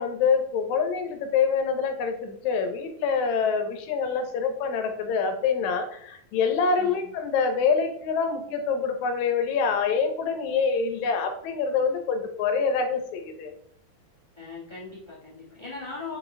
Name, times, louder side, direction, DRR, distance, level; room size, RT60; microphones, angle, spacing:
voice 1, 0.0-13.5, left 5 dB, 75° left, 6 dB, 2.0 m, -26 dB
voice 2, 6.8-7.1 14.4-16.2, left 3 dB, 30° left, -5 dB, 0.5 m, -39 dB
6.8 x 4.9 x 3.2 m, 0.67 s
omnidirectional pair, 3.5 m